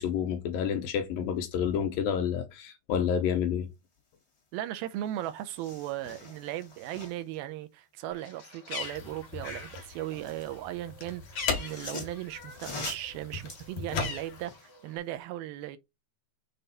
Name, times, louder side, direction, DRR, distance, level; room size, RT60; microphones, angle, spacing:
voice 1, 0.0-3.7, left 8 dB, 70° left, 2.5 m, -29 dB
voice 2, 4.5-15.8, right 14 dB, 80° right, 2.5 m, -37 dB
sound 1, 4.8-4.9 5.1-7.4 9.5-10.6 11.4-14.7 15.1-15.2, left 3 dB, 90° left, 0.6 m, -44 dB
Bird, 8.1-12.7 13.0-15.0, left 4 dB, 35° left, 1.9 m, -42 dB
sound 2, 8.8-14.5, left 5 dB, 55° left, 2.4 m, -38 dB
6.9 x 3.8 x 4.1 m
omnidirectional pair, 4.5 m